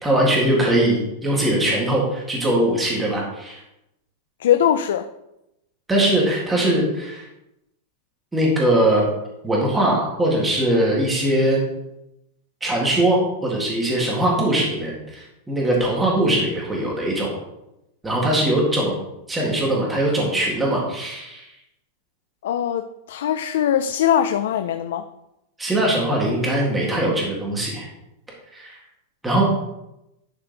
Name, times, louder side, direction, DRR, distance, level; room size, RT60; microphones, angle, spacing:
voice 1, 0.0-3.6 5.9-7.2 8.3-9.1 9.4-11.6 12.6-17.4 18.0-19.0 19.3-21.5 25.6-27.9 28.5-28.8 29.2-29.4, right 1 dB, 5° right, -3 dB, 1.9 m, -21 dB
voice 2, 4.4-5.1 22.4-25.0, left 10 dB, 75° left, 9 dB, 0.4 m, -21 dB
11.0 x 4.4 x 4.1 m, 0.88 s
supercardioid pair, 170°, 0 cm